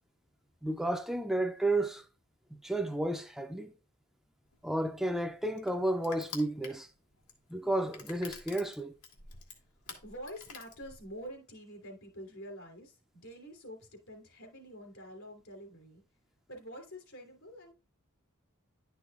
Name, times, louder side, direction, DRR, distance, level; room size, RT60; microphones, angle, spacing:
voice 1, 0.6-2.1 2.5-3.7 4.6-6.9 7.5-8.9, right 1 dB, ahead, 0.4 m, -32 dB
Crushing, 4.5-11.3, left 5 dB, 90° left, 1.9 m, -49 dB
voice 2, 10.0-16.0 16.5-17.7, equal, 75° left, 3.2 m, -47 dB
11.0 x 6.1 x 2.4 m
head